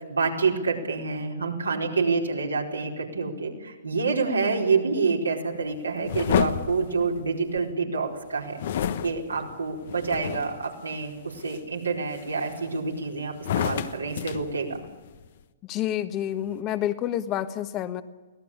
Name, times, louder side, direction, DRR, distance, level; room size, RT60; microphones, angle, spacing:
voice 1, 0.1-8.6 9.0-14.8, right 4 dB, 90° right, 0 dB, 4.5 m, -27 dB
sound 1, 6.1-7.7 8.6-10.7 11.2-11.6 12.1-12.9 13.4-15.3, left 9 dB, 60° left, 1.3 m, -30 dB
voice 2, 15.7-18.0, left 11 dB, 30° left, 11 dB, 1.4 m, -28 dB
24.0 x 17.0 x 8.6 m, 1.2 s
hypercardioid pair, 125°, 0 cm